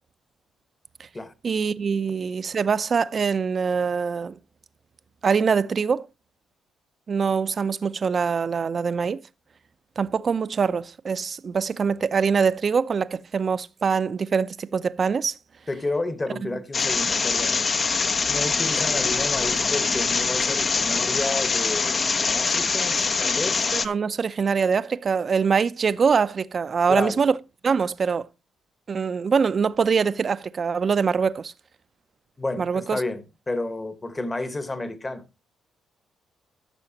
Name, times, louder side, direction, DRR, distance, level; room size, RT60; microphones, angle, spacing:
voice 1, 1.4-4.4 5.2-6.1 7.1-9.2 10.0-15.3 23.7-27.3 27.6-28.3 28.9-31.5 32.6-33.0, right 5 dB, 45° right, 0.6 m, -23 dB
voice 2, 15.7-17.7 18.2-23.7 26.9-27.2 32.4-35.2, left 2 dB, 20° left, 1.2 m, -31 dB
sound 1, 16.7-23.9, left 4 dB, 40° left, 0.7 m, -24 dB
14.0 x 6.2 x 2.8 m
cardioid pair, 90°, 0 cm